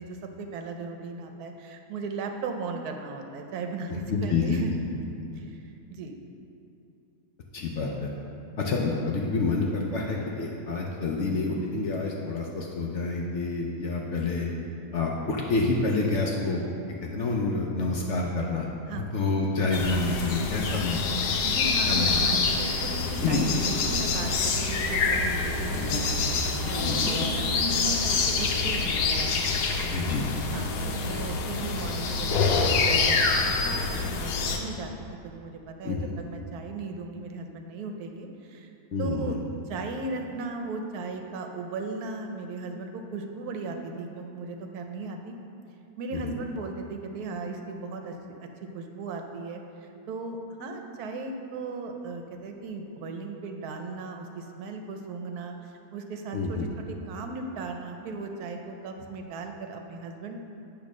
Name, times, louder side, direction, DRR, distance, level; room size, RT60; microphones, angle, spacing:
voice 1, 0.0-4.7 5.4-6.2 18.9-19.1 21.4-26.0 26.4-29.0 30.5-38.7 39.0-39.4 39.7-45.3 46.0-48.1 48.4-48.5 48.7-55.5 55.9-60.4, right 3 dB, 75° right, 4 dB, 1.1 m, -37 dB
voice 2, 4.1-4.6 5.3-5.4 7.5-8.1 8.6-14.5 14.9-16.7 17.0-18.7 19.0-21.0 21.9-22.2 23.2-23.5 26.8-27.1 29.9-30.3 35.8-36.1 38.9-39.4 46.2-46.3 56.3-56.7, left 3 dB, 60° left, -1 dB, 0.8 m, -28 dB
sound 1, 19.7-34.6, left 4 dB, 85° left, 1.2 m, -26 dB
8.4 x 3.1 x 6.0 m, 2.7 s
omnidirectional pair, 1.7 m